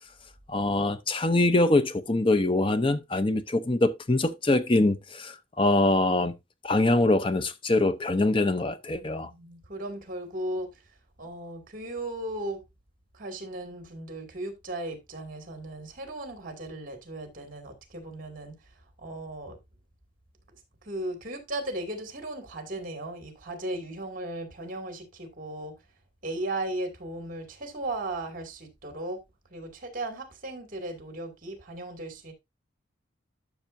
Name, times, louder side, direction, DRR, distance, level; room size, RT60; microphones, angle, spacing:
voice 1, 0.5-6.4 6.6-9.3, left 2 dB, 25° left, 0.7 m, -24 dB
voice 2, 9.0-12.6 13.1-18.7 19.0-19.6 20.8-25.8 26.2-29.2 29.5-32.3, right 1 dB, 45° right, 2.6 m, -36 dB
12.0 x 6.2 x 2.6 m
head